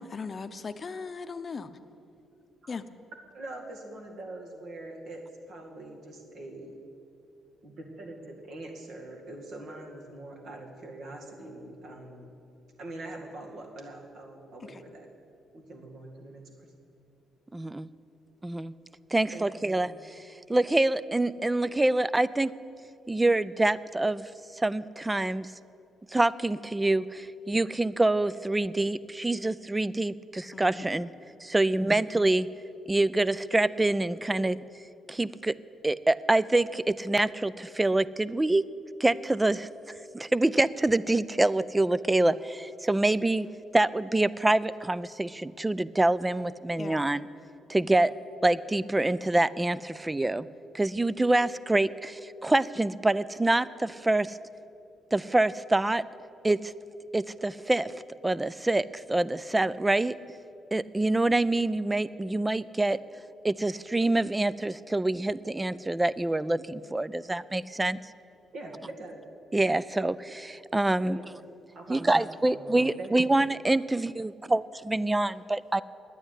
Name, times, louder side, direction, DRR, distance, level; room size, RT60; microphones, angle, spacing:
voice 1, 0.0-1.7 2.7-2.8 30.5-30.9 46.8-47.1, left 4 dB, 35° left, 11 dB, 0.7 m, -38 dB
voice 2, 3.3-6.8 7.6-12.3 12.8-15.1 15.5-16.7 19.3-20.0 68.5-69.2 71.0-71.2 71.7-73.4, right 2 dB, 70° right, 1 dB, 2.2 m, -43 dB
voice 3, 17.5-17.9 18.4-18.7 19.1-20.2 20.5-22.5 23.1-25.5 26.1-31.1 31.4-32.5 32.9-34.6 35.1-35.6 35.8-38.6 39.0-39.7 40.1-43.5 43.7-47.3 47.7-48.1 48.4-50.5 50.7-54.4 55.1-56.0 56.4-56.7 57.1-60.2 60.7-63.0 63.4-68.0 69.5-71.2 71.9-75.8, right 2 dB, 15° right, 18 dB, 0.4 m, -26 dB
10.0 x 9.3 x 9.8 m, 2.6 s
cardioid pair, 90°, 0 cm